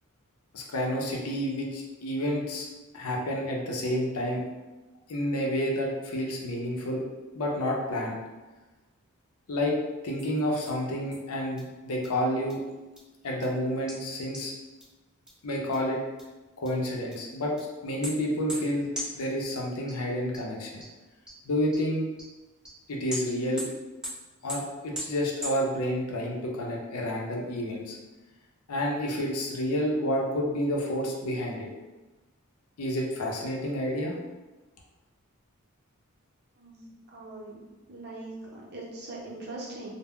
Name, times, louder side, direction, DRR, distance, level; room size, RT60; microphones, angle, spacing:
voice 1, 0.5-2.7 2.9-4.4 5.1-7.0 7.3-8.2 9.5-9.8 10.0-12.6 13.2-14.5 15.4-16.0 16.6-17.5 17.8-18.9 19.1-20.8 21.4-22.1 22.9-23.7 24.4-28.0 28.7-31.7 32.8-34.1, equal, 85° left, -1 dB, 0.5 m, -29 dB
sound 1, 10.2-10.3 10.6-10.7 11.1-11.2 11.6-11.7 12.0-12.1 12.5-12.6 13.0-13.1 13.4-13.5 13.9-14.0 14.3-14.4 14.8-14.9 15.3-15.4 15.7-15.8 16.2-16.3 16.6-16.7 17.1-17.2 17.6-17.7 18.0-18.1 18.5-18.6 18.9-19.0 19.4-19.5 19.9-20.0 20.3-20.4 20.8-20.9 21.3-21.4 21.7-21.8 22.2-22.3 22.6-22.7 23.1-23.2 23.6-23.7 24.0-24.1 24.5-24.6 24.9-25.0 25.4-25.5, equal, 5° right, 0.5 m, -36 dB
voice 2, 36.6-37.6 37.9-39.9, right 2 dB, 50° right, -5 dB, 0.7 m, -41 dB
2.1 x 2.1 x 3.5 m, 1.1 s
head